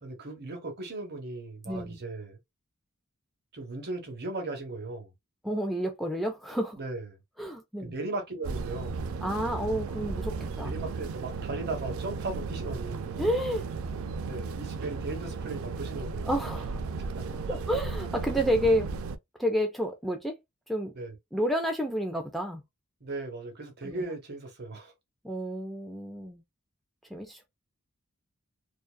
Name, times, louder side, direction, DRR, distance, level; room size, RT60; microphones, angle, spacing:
voice 1, 0.0-2.4 3.5-5.1 6.7-7.1 7.8-9.0 10.6-13.1 14.2-16.3 17.1-17.3 20.9-21.1 23.0-24.9, right 2 dB, 50° right, 1.0 m, -37 dB
voice 2, 1.7-2.0 5.4-6.8 7.4-7.9 9.2-10.7 13.2-13.6 16.2-16.8 17.5-18.9 19.4-20.4 20.7-20.9 21.3-22.6 23.8-24.0 25.2-26.4 27.1-27.5, equal, ahead, 0.4 m, -30 dB
sound 1, 8.4-19.2, right 4 dB, 70° right, 0.3 m, -35 dB
2.6 x 2.3 x 2.3 m
head